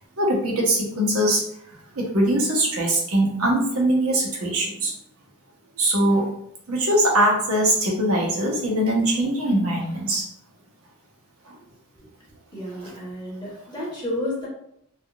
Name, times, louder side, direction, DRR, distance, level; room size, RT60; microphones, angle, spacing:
voice 1, 0.2-1.4 1.9-4.9 5.8-6.3 6.7-10.3 11.5-11.6, right 1 dB, 85° right, -1 dB, 0.9 m, -22 dB
voice 2, 12.5-14.5, left 1 dB, 20° left, -7 dB, 0.9 m, -31 dB
3.5 x 2.3 x 2.3 m, 0.72 s
head